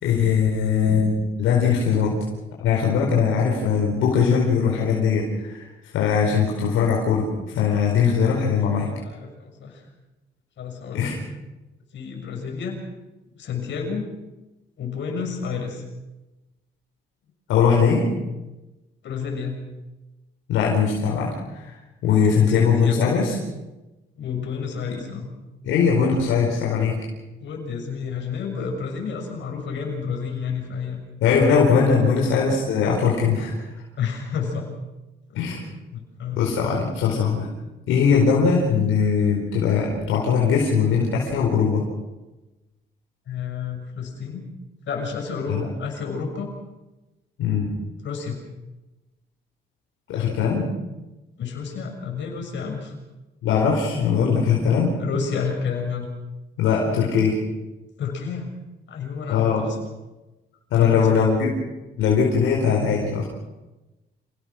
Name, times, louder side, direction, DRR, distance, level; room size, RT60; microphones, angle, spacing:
voice 1, 0.0-2.2 2.6-5.6 5.9-7.2 7.5-8.9 10.9-11.2 17.5-18.1 20.5-21.7 22.0-23.4 24.9-25.0 25.6-27.0 31.2-33.5 35.3-35.6 36.4-37.5 37.9-41.8 45.5-45.7 47.4-47.8 50.1-50.7 53.4-55.0 56.6-57.4 59.3-59.7 60.7-61.6 62.0-63.3, left 6 dB, 90° left, -2 dB, 4.6 m, -20 dB
voice 2, 8.8-9.8 10.6-11.2 11.9-12.8 13.4-14.1 14.8-15.8 19.0-19.6 22.4-23.2 24.1-25.3 27.4-31.0 31.9-32.1 34.0-34.7 35.9-36.5 43.3-44.4 44.8-46.5 48.0-48.4 51.4-52.9 55.0-56.1 58.0-58.5 58.9-59.7 60.7-61.0, left 6 dB, 70° left, 2 dB, 6.7 m, -30 dB
28.0 x 18.0 x 6.1 m, 1.1 s
cardioid pair, 90°, 20 cm